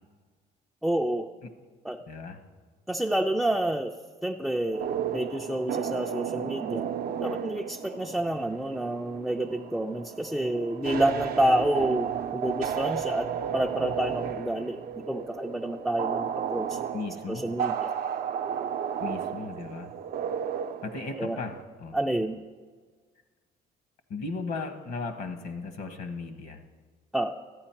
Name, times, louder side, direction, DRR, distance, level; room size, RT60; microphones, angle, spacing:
voice 1, 0.8-1.3 1.8-2.0 2.9-3.9 4.2-6.8 7.2-16.8 17.3-17.9 21.2-21.4 21.9-22.4 27.1-27.3, right 1 dB, ahead, 2 dB, 0.4 m, -29 dB
voice 2, 2.1-2.4 16.9-17.5 19.0-19.9 20.8-22.0 24.1-26.6, left 4 dB, 65° left, 8 dB, 1.2 m, -36 dB
sound 1, 4.7-21.6, right 8 dB, 65° right, 0.6 m, -33 dB
13.0 x 8.9 x 4.4 m, 1.5 s
cardioid pair, 110°, 17 cm